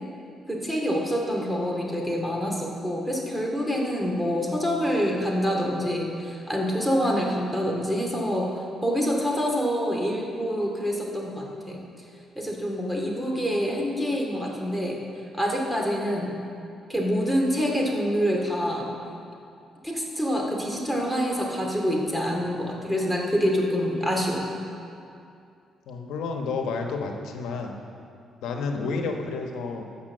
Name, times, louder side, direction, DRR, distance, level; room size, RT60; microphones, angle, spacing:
voice 1, 0.5-11.8 12.4-15.0 15.3-16.3 16.9-18.9 19.8-24.4, equal, 5° right, -1 dB, 2.3 m, -26 dB
voice 2, 25.9-27.8 28.4-29.8, left 4 dB, 85° left, 3 dB, 1.1 m, -30 dB
13.5 x 5.8 x 7.6 m, 2.5 s
cardioid pair, 90°, 0 cm